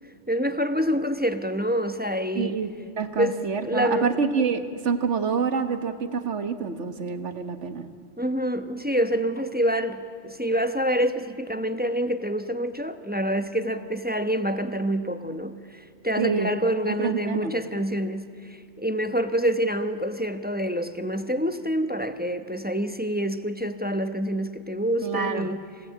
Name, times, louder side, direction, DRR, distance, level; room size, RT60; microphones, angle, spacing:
voice 1, 0.3-2.6 3.2-4.1 8.2-25.6, equal, 10° right, 9 dB, 0.9 m, -27 dB
voice 2, 2.4-7.9 16.2-16.5 16.9-17.5 25.0-25.5, right 5 dB, 75° right, 9 dB, 1.7 m, -27 dB
27.5 x 17.5 x 8.6 m, 2.4 s
omnidirectional pair, 1.2 m